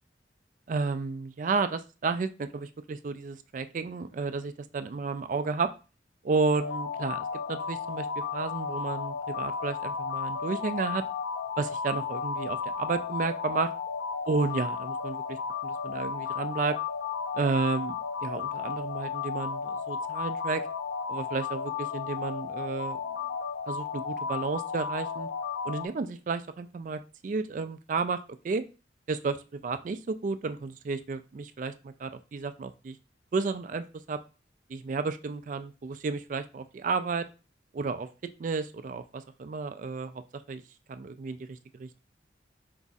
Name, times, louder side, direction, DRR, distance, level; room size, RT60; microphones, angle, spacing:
voice 1, 0.7-5.7 6.2-8.1 8.3-11.0 11.6-13.7 14.3-16.8 17.3-18.0 18.2-20.6 21.1-23.0 23.7-25.3 25.6-28.2 28.4-28.6 29.1-33.0 33.3-34.2 34.7-37.3 37.7-38.1 38.4-40.2 40.5-40.6 40.9-42.0, right 4 dB, 45° right, 11 dB, 0.3 m, -32 dB
sound 1, 6.6-25.9, left 6 dB, 75° left, 0.6 m, -34 dB
4.6 x 2.4 x 4.0 m, 0.32 s
head